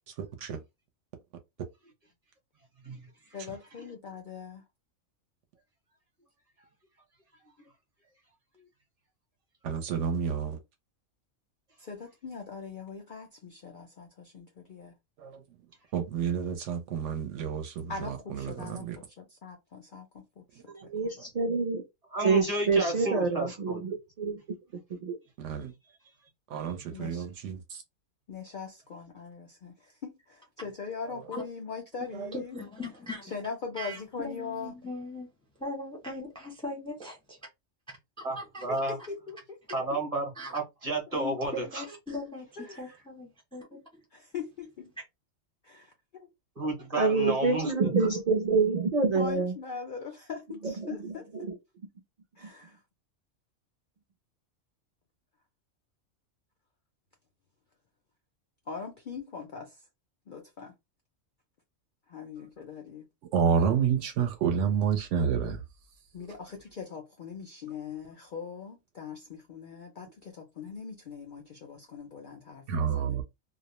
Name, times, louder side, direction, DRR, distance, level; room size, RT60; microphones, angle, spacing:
voice 1, 0.2-0.6 9.6-10.6 15.2-15.4 15.9-19.0 20.9-21.0 25.4-25.7 26.5-27.8 31.1-31.2 32.1-32.3 63.3-65.6 66.3-66.4 72.7-73.2, right 7 dB, 70° right, 0.9 m, -29 dB
voice 2, 3.3-4.6 11.8-14.9 17.9-20.6 21.0-21.1 26.9-27.3 28.3-32.6 33.2-34.8 38.7-40.0 42.6-43.0 44.1-44.9 45.6-46.3 49.1-51.5 52.4-52.8 58.7-59.8 60.3-60.7 62.1-63.1 66.1-73.2, left 5 dB, 60° left, 0.5 m, -41 dB
voice 3, 20.7-21.8 22.2-24.4 25.0-25.2 47.0-49.5 50.6-51.1 51.5-51.6, right 4 dB, 50° right, 0.5 m, -27 dB
voice 4, 22.1-23.8 38.2-39.0 39.7-41.8 46.6-47.7, right 2 dB, 35° right, 0.8 m, -32 dB
voice 5, 32.3-33.3 33.8-35.3 35.6-37.4 38.2-38.7 40.4-40.6 41.1-42.5 42.8-44.0, left 2 dB, 5° left, 0.5 m, -39 dB
2.3 x 2.0 x 2.9 m
omnidirectional pair, 1.4 m